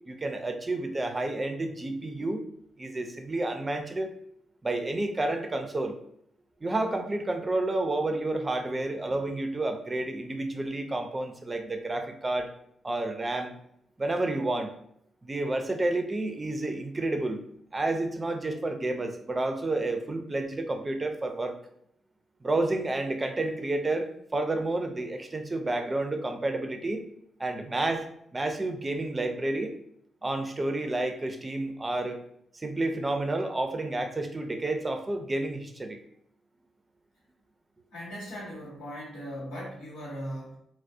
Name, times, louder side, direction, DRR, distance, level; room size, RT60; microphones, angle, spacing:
voice 1, 0.1-2.4 2.8-4.1 4.6-6.0 6.6-12.5 12.8-13.5 14.0-14.7 15.2-17.4 17.7-21.5 22.4-27.0 27.4-28.0 28.3-29.7 30.2-32.2 32.5-36.0, right 2 dB, 30° right, 6 dB, 0.4 m, -30 dB
voice 2, 37.9-40.6, equal, 85° left, -6 dB, 1.0 m, -39 dB
2.3 x 2.0 x 2.6 m, 0.72 s
hypercardioid pair, 45°, 0 cm